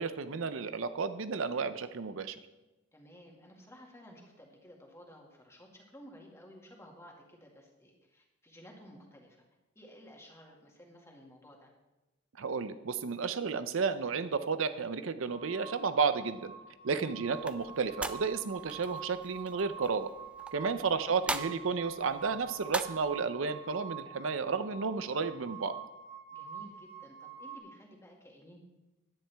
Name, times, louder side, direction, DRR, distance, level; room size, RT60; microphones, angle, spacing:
voice 1, 0.0-2.4 12.4-16.5 16.8-20.1 20.5-25.8, right 5 dB, 70° right, 11 dB, 0.6 m, -32 dB
voice 2, 2.9-9.4 9.8-11.7 16.9-17.2 20.6-20.9 26.3-28.6, equal, 15° left, -1 dB, 2.0 m, -54 dB
sound 1, 15.3-27.6, right 7 dB, 90° left, 1.5 m, -47 dB
sound 2, 17.3-23.2, right 2 dB, 5° right, 0.4 m, -42 dB
16.5 x 10.5 x 3.5 m, 1.0 s
head